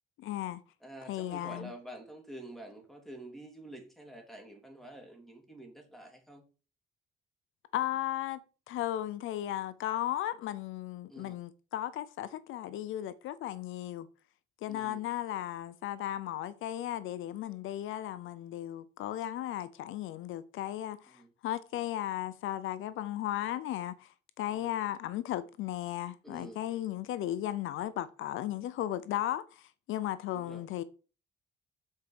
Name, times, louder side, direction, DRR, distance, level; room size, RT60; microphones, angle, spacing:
voice 1, 0.2-0.6 1.0-1.7 7.7-8.4 8.7-14.1 14.6-30.8, left 13 dB, 85° left, 0.6 m, -35 dB
voice 2, 0.8-6.4 11.1-11.4 14.7-15.0 21.1-21.3 24.5-24.8 26.2-26.6 30.3-30.6, right 1 dB, ahead, 3.2 m, -48 dB
7.4 x 4.7 x 6.3 m
cardioid pair, 90°, 20 cm